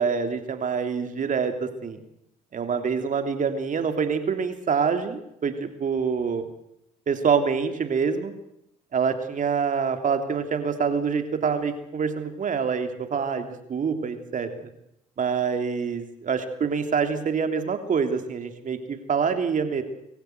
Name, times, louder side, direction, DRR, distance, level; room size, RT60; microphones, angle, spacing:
voice 1, 0.0-2.0 2.5-6.5 7.1-8.3 8.9-14.5 15.2-19.8, right 6 dB, 45° right, 7 dB, 2.9 m, -26 dB
25.0 x 14.5 x 8.0 m, 0.81 s
supercardioid pair, 70°, 19 cm